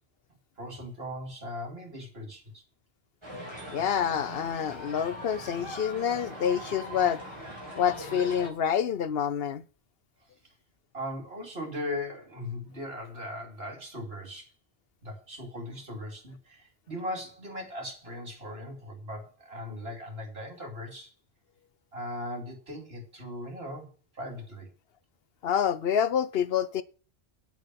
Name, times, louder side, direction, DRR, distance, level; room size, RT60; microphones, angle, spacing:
voice 1, 0.6-2.6 10.9-14.5 15.0-21.1 21.9-23.9 24.1-24.7, left 1 dB, 70° right, 3.3 m, -38 dB
sound 1, 3.2-8.5, equal, 25° right, 4.4 m, -41 dB
voice 2, 3.7-7.2 7.8-9.6 25.4-26.8, left 8 dB, 70° left, 1.0 m, -27 dB
9.1 x 7.3 x 7.6 m
omnidirectional pair, 1.1 m